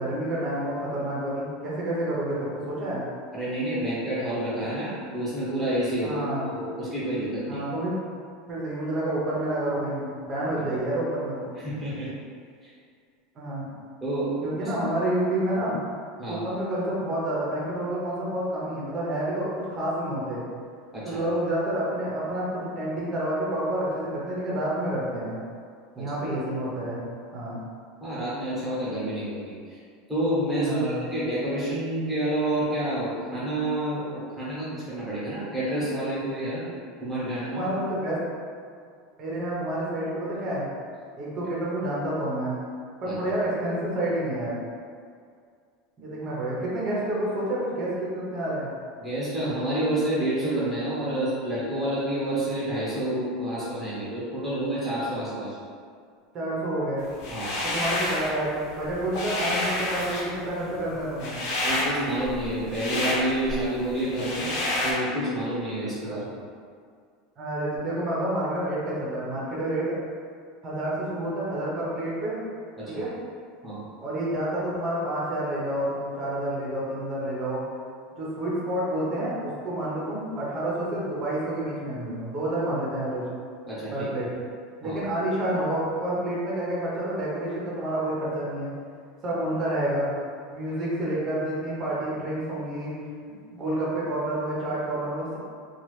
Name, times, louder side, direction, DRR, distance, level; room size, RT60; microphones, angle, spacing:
voice 1, 0.0-3.0 6.0-6.5 7.5-8.0 8.5-11.4 13.3-13.7 14.4-15.8 16.3-20.4 21.0-25.4 26.0-27.0 27.3-27.6 30.7-31.0 37.5-38.2 39.2-40.6 41.2-42.6 43.0-44.6 46.0-48.7 56.3-57.1 57.6-61.4 66.0-66.2 67.4-69.9 70.6-72.4 72.9-73.1 74.0-77.6 78.1-83.3 83.9-84.3 84.8-88.7 89.2-90.1 90.5-93.0 93.3-95.4, right 1 dB, 25° right, -6 dB, 0.8 m, -29 dB
voice 2, 3.3-7.6 10.6-10.7 11.6-12.1 12.6-12.7 14.0-14.3 16.2-16.4 20.9-21.2 25.9-26.1 28.0-29.8 30.1-36.6 37.0-37.6 43.0-43.2 49.0-55.5 57.3-57.5 61.6-64.5 64.8-66.2 72.8-73.0 73.6-73.8 83.7-84.1 84.8-85.0, right 1 dB, ahead, -10 dB, 1.1 m, -29 dB
sound 1, 57.2-58.3 58.7-64.9, left 1 dB, 55° left, 0.7 m, -29 dB
2.9 x 2.3 x 3.2 m, 2.2 s
supercardioid pair, 160°, 0 cm